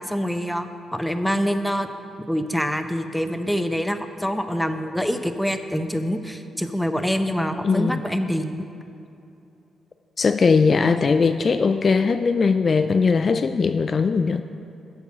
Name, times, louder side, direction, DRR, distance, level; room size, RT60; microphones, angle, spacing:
voice 1, 0.1-1.9 2.3-8.7, equal, 5° left, 8 dB, 0.8 m, -25 dB
voice 2, 7.6-8.1 10.2-14.4, left 5 dB, 45° left, 10 dB, 0.3 m, -20 dB
7.8 x 7.1 x 6.1 m, 2.8 s
hypercardioid pair, 40°, 0 cm